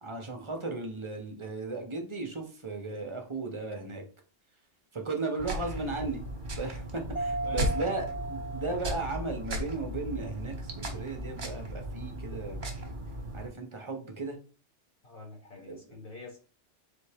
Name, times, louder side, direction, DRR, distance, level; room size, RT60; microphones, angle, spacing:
voice 1, 0.0-4.0 4.9-6.2 6.6-12.6 13.3-14.4 15.6-15.8, right 3 dB, 30° right, 4 dB, 0.7 m, -36 dB
sound 1, 5.4-13.5, right 1 dB, 45° right, 1.1 m, -36 dB
Mallet percussion, 7.2-9.7, right 2 dB, 20° left, 0.8 m, -36 dB
voice 2, 7.4-7.9 15.0-16.4, left 3 dB, 50° left, 0 dB, 1.5 m, -45 dB
4.2 x 3.3 x 3.4 m, 0.38 s
omnidirectional pair, 1.2 m